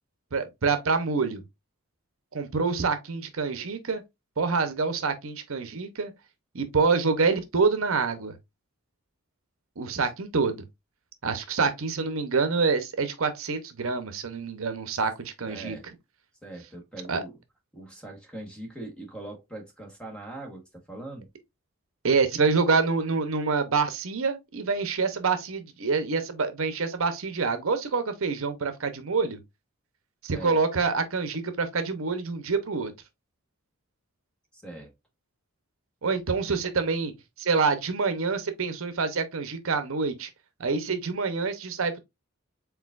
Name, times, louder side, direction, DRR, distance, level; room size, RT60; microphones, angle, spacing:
voice 1, 0.3-1.4 2.3-4.0 4.4-6.1 6.5-8.3 9.8-10.6 11.2-15.8 17.1-17.2 22.0-29.4 30.2-32.9 36.0-37.1 37.4-40.3 40.6-42.0, right 4 dB, 65° right, 0.7 m, -26 dB
voice 2, 15.5-15.8 16.4-17.3 17.7-21.3 30.3-30.6 34.5-34.9, right 2 dB, 5° left, 1.1 m, -41 dB
4.7 x 3.9 x 2.4 m
head